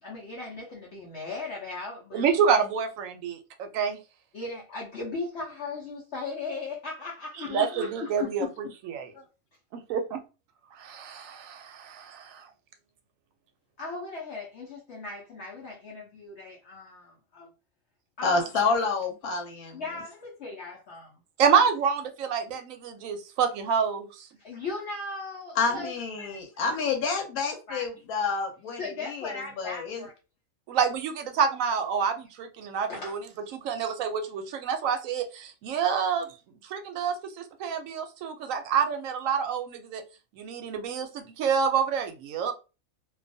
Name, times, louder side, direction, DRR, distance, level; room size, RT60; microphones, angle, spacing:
voice 1, 0.0-2.4 4.3-7.9 9.1-9.3 13.8-17.5 18.2-18.5 19.7-21.2 24.4-26.4 26.7-27.2 27.7-27.9 28.8-30.1 32.9-33.2 35.8-36.0, left 3 dB, 60° left, 0.8 m, -38 dB
voice 2, 2.1-4.0 7.5-9.1 9.7-10.2 10.8-12.5 21.4-24.3 30.7-33.2 33.5-36.3 36.7-40.0 40.3-42.5, right 6 dB, 75° right, 0.9 m, -27 dB
voice 3, 7.4-8.3 18.2-19.8 25.6-30.0, left 4 dB, 90° left, 1.1 m, -29 dB
2.4 x 2.3 x 2.5 m
omnidirectional pair, 1.5 m